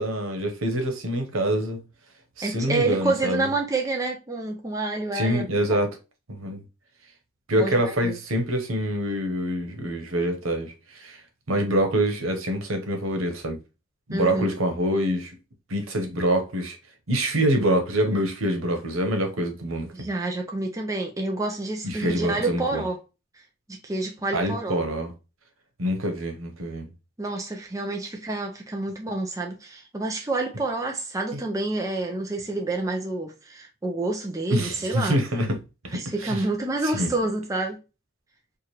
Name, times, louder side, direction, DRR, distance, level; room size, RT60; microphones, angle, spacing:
voice 1, 0.0-1.8 2.4-3.5 5.1-5.9 6.3-6.6 7.5-11.2 11.5-13.6 14.1-15.4 15.7-16.8 17.1-20.1 21.8-22.8 24.3-25.1 25.8-26.9 31.3-31.4 34.5-35.6 35.8-36.4 36.8-37.1, right 1 dB, 90° right, 1.1 m, -25 dB
voice 2, 2.4-5.4 5.7-5.8 7.5-8.1 14.1-14.5 19.9-23.0 23.7-24.8 27.2-35.2 35.9-37.8, right 2 dB, 15° right, 0.6 m, -28 dB
4.7 x 2.5 x 3.0 m
head